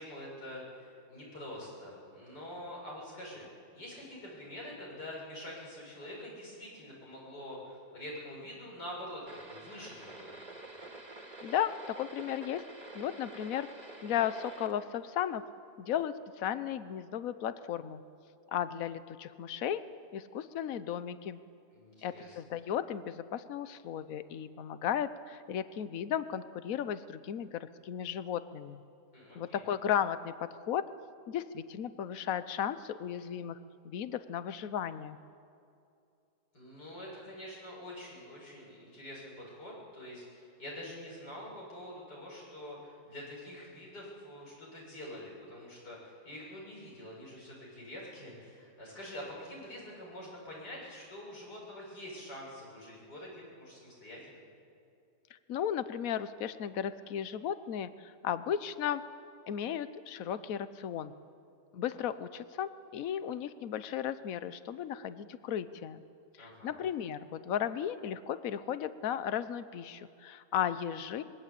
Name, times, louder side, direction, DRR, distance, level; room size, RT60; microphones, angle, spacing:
voice 1, 0.0-3.4 3.7-10.4 21.7-22.4 29.1-29.7 36.5-54.4 66.4-66.8, left 1 dB, 80° left, -3 dB, 7.5 m, -46 dB
sound 1, 9.3-14.7, right 2 dB, 25° right, 2.4 m, -48 dB
voice 2, 11.4-12.6 12.9-13.7 14.0-15.4 15.8-18.0 18.5-19.8 20.1-21.4 22.0-28.8 29.3-30.8 31.3-33.6 33.8-35.2 55.5-59.0 59.5-61.1 61.7-66.0 66.4-71.2, left 9 dB, 60° left, 13 dB, 1.2 m, -35 dB
25.0 x 21.5 x 8.5 m, 2.6 s
omnidirectional pair, 1.8 m